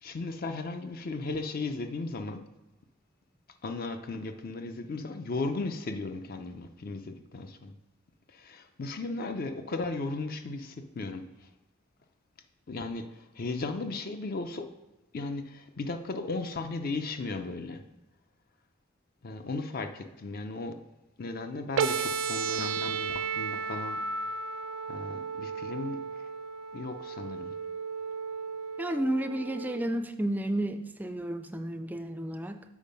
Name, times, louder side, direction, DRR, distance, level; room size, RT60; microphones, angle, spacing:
voice 1, 0.0-2.4 3.6-7.7 8.3-11.5 12.7-14.7 15.1-17.8 19.2-20.8 21.2-24.0 24.9-26.3 26.7-27.5, left 3 dB, 45° left, 7 dB, 0.5 m, -36 dB
sound 1, 21.8-29.8, right 5 dB, 75° right, 0.5 m, -34 dB
voice 2, 28.8-32.6, right 1 dB, 10° right, 8 dB, 0.3 m, -32 dB
7.2 x 4.6 x 5.3 m, 1.0 s
head